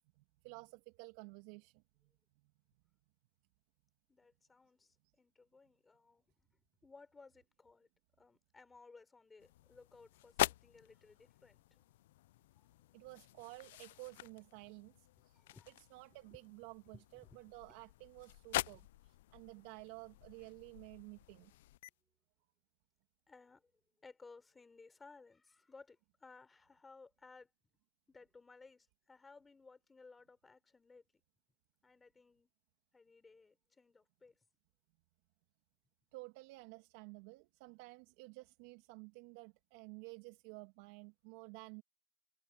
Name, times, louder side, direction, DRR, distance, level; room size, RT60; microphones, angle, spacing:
voice 1, 0.2-1.8 12.9-15.4 15.7-21.5 36.1-41.8, right 26 dB, 35° right, 2.2 m, -53 dB
voice 2, 4.1-6.3 6.8-7.9 8.2-11.9 12.5-12.9 15.3-15.7 16.3-16.4 16.9-17.4 18.6-18.7 23.3-23.7 24.0-27.5 28.1-31.1 31.8-32.5 32.9-34.4, left 4 dB, 5° left, 5.3 m, -60 dB
sound 1, 9.4-21.9, left 16 dB, 45° left, 0.3 m, -44 dB
hypercardioid pair, 155°, 0 cm